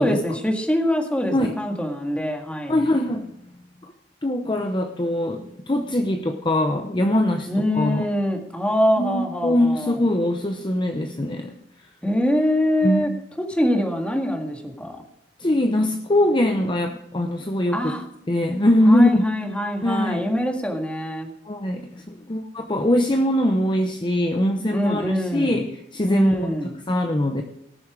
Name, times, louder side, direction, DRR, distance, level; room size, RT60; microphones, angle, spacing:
voice 1, 0.0-2.9 7.5-10.0 12.0-13.1 13.4-15.0 17.7-18.0 18.8-21.3 24.7-25.7 26.0-26.7, equal, 5° left, 3 dB, 1.9 m, -24 dB
voice 2, 2.7-3.2 4.2-8.1 9.0-11.5 12.8-13.1 15.4-17.9 18.3-19.3 19.8-20.2 21.5-25.7 25.9-26.6 26.9-27.4, left 1 dB, 25° left, 4 dB, 0.8 m, -22 dB
18.0 x 7.0 x 4.9 m, 0.82 s
head